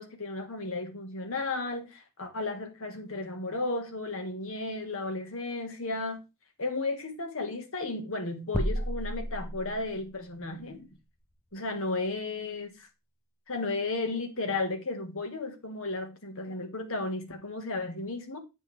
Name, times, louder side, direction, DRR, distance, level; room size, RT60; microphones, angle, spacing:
voice 1, 0.0-6.2 6.6-10.9 11.5-12.9 13.5-18.4, left 2 dB, 65° left, 1.6 m, -34 dB
sound 1, 8.5-10.1, equal, 10° left, 0.5 m, -32 dB
8.3 x 6.9 x 3.4 m
head